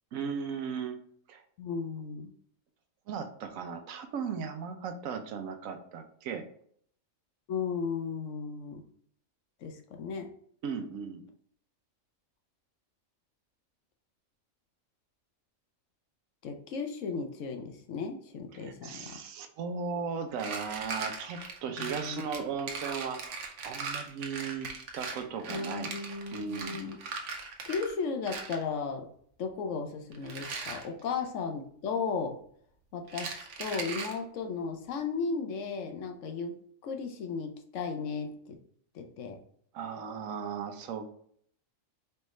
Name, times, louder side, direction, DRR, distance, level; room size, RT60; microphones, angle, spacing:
voice 1, 0.1-1.0 1.3-1.4 3.1-6.4 10.6-11.2 18.5-23.2 23.6-24.7 24.9-25.9 26.3-26.8 39.7-41.2, right 6 dB, 90° right, 7 dB, 1.1 m, -36 dB
voice 2, 1.6-2.3 7.5-8.8 9.6-10.3 16.4-19.2 21.8-22.3 25.5-27.0 27.7-29.1 29.4-32.3 32.9-36.6 36.8-38.6 38.9-39.4, left 5 dB, 70° left, 5 dB, 1.0 m, -35 dB
sound 1, 20.3-27.9 28.2-28.6 30.1-30.8 33.1-34.2, right 4 dB, 65° right, 1.1 m, -39 dB
4.4 x 3.4 x 3.1 m, 0.62 s
omnidirectional pair, 1.4 m